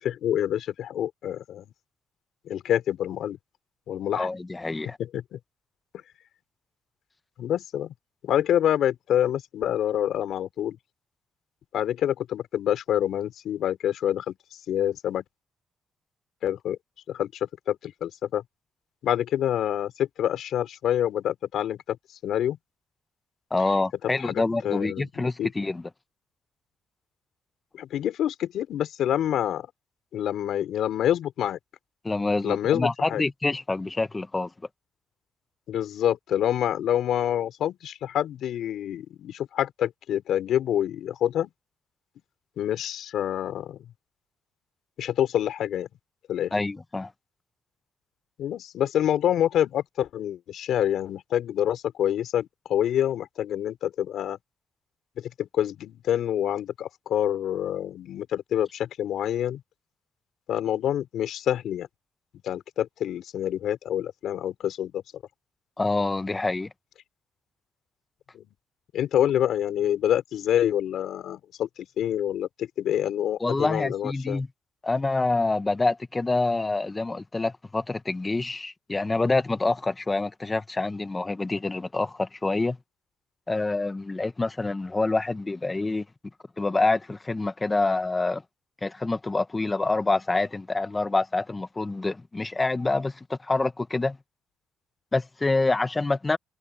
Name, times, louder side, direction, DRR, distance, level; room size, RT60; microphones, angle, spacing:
voice 1, 0.0-1.7 2.4-3.4 3.9-4.3 4.8-5.4 7.4-7.9 8.2-10.8 11.7-14.4 14.7-15.2 16.4-16.8 17.1-18.4 19.0-22.0 22.2-22.6 24.2-25.5 27.7-29.7 30.1-31.6 32.4-33.2 35.7-41.5 42.6-43.8 45.0-45.9 46.3-46.5 48.4-54.4 55.2-59.6 60.5-61.9 62.4-65.0 68.3-68.5 68.9-71.7 72.0-74.4, left 10 dB, 80° left, 4.6 m, -27 dB
voice 2, 4.1-5.0 23.5-25.8 32.0-34.5 46.5-47.1 65.8-66.7 73.4-74.5 74.8-82.8 83.5-86.0 86.6-88.4 88.8-94.2 95.1-96.4, left 3 dB, 20° left, 1.3 m, -26 dB
cardioid pair, 100°, 0 cm